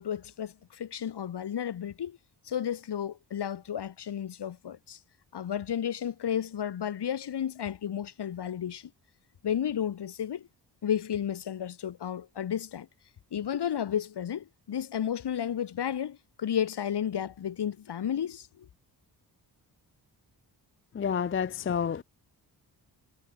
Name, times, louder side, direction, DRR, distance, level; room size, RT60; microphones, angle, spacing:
voice 1, 0.0-2.2 2.5-5.0 5.3-8.9 9.4-10.5 10.8-12.9 13.3-18.7, left 9 dB, 70° left, 2.0 m, -32 dB
voice 2, 20.9-22.0, left 7 dB, 30° left, 0.5 m, -29 dB
cardioid pair, 65°, 42 cm